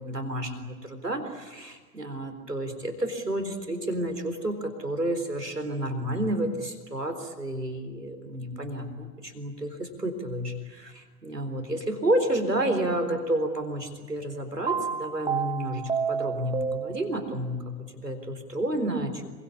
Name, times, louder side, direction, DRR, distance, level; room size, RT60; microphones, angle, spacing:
voice 1, 0.0-19.3, right 1 dB, 90° right, 6 dB, 4.0 m, -30 dB
sound 1, 14.7-17.5, right 6 dB, 10° right, 1.6 m, -30 dB
26.5 x 23.5 x 8.4 m, 1.4 s
figure-of-eight pair, 95°, 47 cm